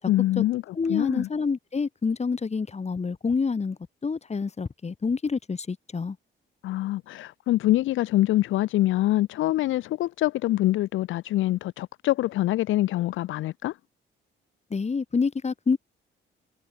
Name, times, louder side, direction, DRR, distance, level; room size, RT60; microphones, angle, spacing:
voice 1, 0.1-1.3 6.6-13.8, left 15 dB, 85° left, 1.2 m, -25 dB
voice 2, 0.8-6.2 14.7-15.8, left 5 dB, 35° left, 7.5 m, -27 dB
cardioid pair, 90°, 20 cm